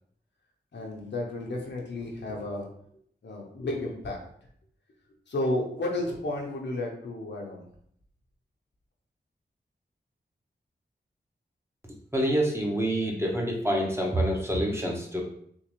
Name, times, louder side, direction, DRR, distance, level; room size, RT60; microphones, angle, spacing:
voice 1, 0.7-2.7 3.2-4.2 5.3-7.6, left 1 dB, 75° left, -1 dB, 0.8 m, -32 dB
voice 2, 12.1-15.2, equal, 15° right, -1 dB, 0.9 m, -27 dB
3.8 x 2.6 x 3.0 m, 0.66 s
wide cardioid pair, 60°, 19 cm